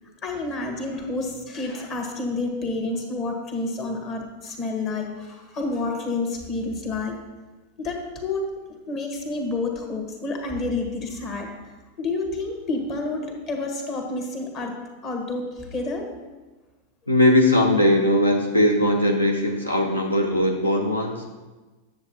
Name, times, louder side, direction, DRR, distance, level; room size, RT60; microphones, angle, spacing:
voice 1, 0.2-7.2 7.8-11.5 12.0-16.2, left 2 dB, 35° left, 3 dB, 1.4 m, -29 dB
voice 2, 17.1-21.3, left 1 dB, 80° left, 2 dB, 0.6 m, -20 dB
9.5 x 7.3 x 2.9 m, 1.2 s
figure-of-eight pair, 90°, 0 cm